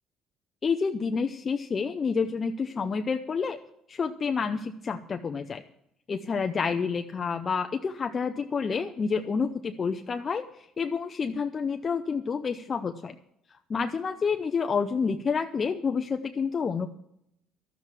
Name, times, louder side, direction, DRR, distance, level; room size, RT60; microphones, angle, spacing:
voice 1, 0.6-3.6 3.9-5.6 6.1-10.5 10.8-13.2 13.7-16.9, left 5 dB, 30° left, 7 dB, 0.6 m, -29 dB
12.5 x 7.2 x 9.2 m, 0.75 s
cardioid pair, 120°, 0 cm